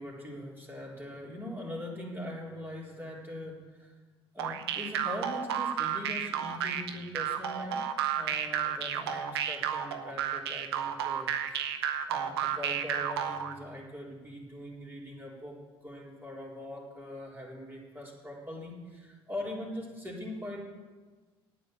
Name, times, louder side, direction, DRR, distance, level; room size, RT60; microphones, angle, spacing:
voice 1, 0.0-3.9 4.3-7.8 8.1-11.7 12.1-20.6, left 1 dB, 15° right, -3 dB, 3.9 m, -42 dB
sound 1, 4.4-13.5, right 9 dB, 85° right, 0.7 m, -32 dB
9.6 x 9.1 x 7.8 m, 1.3 s
hypercardioid pair, 55°, 13 cm